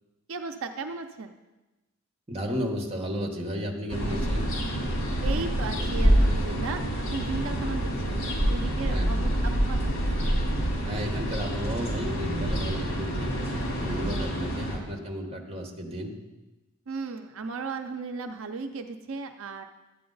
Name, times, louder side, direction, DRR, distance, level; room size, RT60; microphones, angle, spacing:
voice 1, 0.3-1.3 5.2-8.2 8.5-10.1 13.9-14.3 16.9-19.6, right 4 dB, 70° right, 6 dB, 0.5 m, -36 dB
voice 2, 2.3-4.5 8.9-9.1 10.8-13.3 13.7-16.2, equal, 30° right, 2 dB, 1.1 m, -33 dB
sound 1, 3.9-14.8, equal, 80° left, 3.0 m, -27 dB
11.5 x 8.6 x 3.9 m, 1.1 s
head